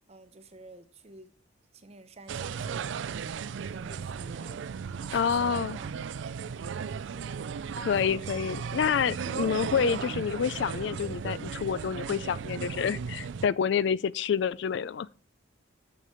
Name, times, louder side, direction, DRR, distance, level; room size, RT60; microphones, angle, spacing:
voice 1, 0.1-1.3 1.7-2.9 3.7-4.7 5.1-5.9, right 2 dB, 35° right, 0.8 m, -51 dB
sound 1, 2.3-13.5, right 6 dB, 75° right, 0.4 m, -36 dB
voice 2, 5.1-5.8 7.8-15.1, left 7 dB, 65° left, 0.3 m, -28 dB
6.6 x 6.3 x 5.6 m
head